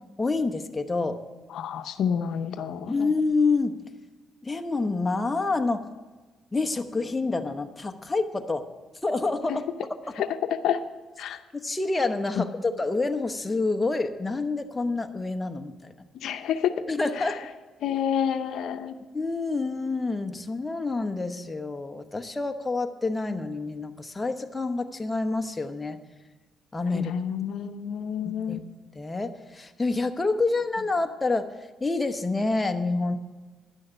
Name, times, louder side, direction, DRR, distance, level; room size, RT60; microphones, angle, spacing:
voice 1, 0.2-1.2 2.9-3.8 4.4-5.9 6.5-8.6 9.0-9.7 11.5-15.9 16.9-17.5 19.1-26.0 26.7-27.1 28.5-28.6 29.0-31.5 31.8-33.2, left 3 dB, 20° left, 6 dB, 0.9 m, -27 dB
voice 2, 1.5-3.1 9.5-9.6 10.2-10.3 10.6-10.8 11.2-11.4 12.4-12.5 16.2-16.8 17.2-17.3 17.8-19.0 26.9-28.6, left 8 dB, 75° left, 8 dB, 0.6 m, -28 dB
11.0 x 6.4 x 8.9 m, 1.3 s
cardioid pair, 90°, 0 cm